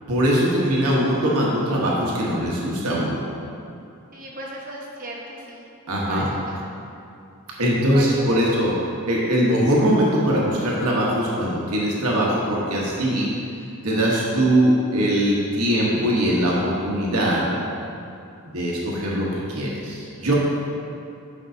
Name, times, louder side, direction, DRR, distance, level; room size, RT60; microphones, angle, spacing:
voice 1, 0.1-3.2 5.9-6.3 7.6-8.7 9.1-13.3 13.8-17.6 18.5-20.3, equal, 80° right, -4 dB, 1.2 m, -21 dB
voice 2, 4.1-5.6 6.1-6.3 7.9-8.4, right 1 dB, 40° right, -3 dB, 1.1 m, -35 dB
10.5 x 5.4 x 2.8 m, 2.6 s
head